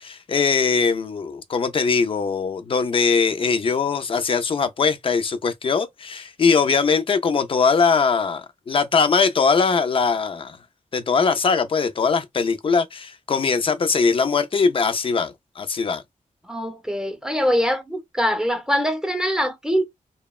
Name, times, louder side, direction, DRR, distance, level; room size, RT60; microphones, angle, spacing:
voice 1, 0.0-10.6 10.9-16.0, left 5 dB, 40° left, 0.4 m, -21 dB
voice 2, 16.4-19.9, equal, 5° right, 0.6 m, -23 dB
2.8 x 2.1 x 2.3 m
wide cardioid pair, 120°, 14 cm